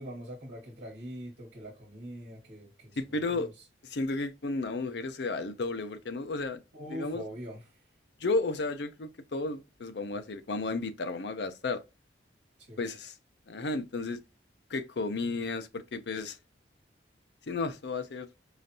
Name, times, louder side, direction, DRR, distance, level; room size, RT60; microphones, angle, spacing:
voice 1, 0.0-3.6 6.7-7.8 12.6-12.8, equal, 65° right, 1.3 m, -43 dB
voice 2, 3.0-3.5 3.8-6.6 6.9-7.2 8.2-11.8 12.8-13.1 13.5-14.2 14.7-16.4 17.4-18.3, left 3 dB, 65° left, 0.5 m, -33 dB
5.0 x 2.5 x 2.6 m
head